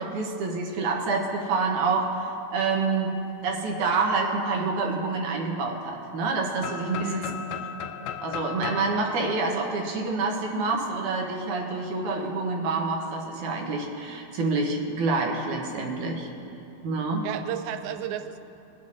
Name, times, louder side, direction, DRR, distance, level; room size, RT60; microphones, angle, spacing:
voice 1, 0.0-2.1 2.5-3.2 3.4-7.2 8.2-16.3 16.8-17.3, right 3 dB, 70° right, 0 dB, 2.2 m, -27 dB
sound 1, 6.6-10.4, left 7 dB, 85° left, 1.8 m, -36 dB
voice 2, 7.0-7.4 17.2-18.4, right 8 dB, 90° right, 9 dB, 2.4 m, -32 dB
20.5 x 8.5 x 2.7 m, 2.8 s
omnidirectional pair, 4.2 m